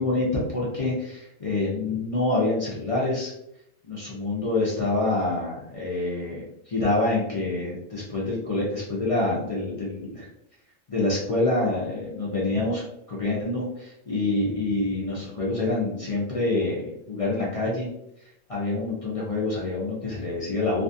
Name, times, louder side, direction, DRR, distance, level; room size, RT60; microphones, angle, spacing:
voice 1, 0.0-3.3 3.8-10.3 10.9-12.8 13.1-17.9 18.5-20.8, left 2 dB, 60° left, -6 dB, 0.3 m, -26 dB
2.4 x 2.3 x 2.6 m, 0.77 s
omnidirectional pair, 1.5 m